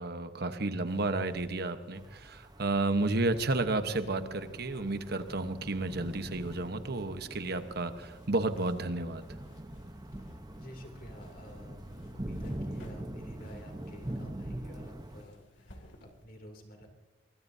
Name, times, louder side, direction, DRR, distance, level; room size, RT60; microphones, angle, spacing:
voice 1, 0.0-9.2, right 2 dB, 60° right, 9 dB, 1.2 m, -32 dB
sound 1, 0.8-16.3, left 1 dB, 80° left, 2.6 m, -58 dB
sound 2, 1.9-15.2, right 1 dB, 20° right, 1.0 m, -44 dB
voice 2, 10.1-16.9, equal, 50° left, 3 dB, 2.9 m, -52 dB
24.0 x 21.5 x 2.8 m, 1.2 s
head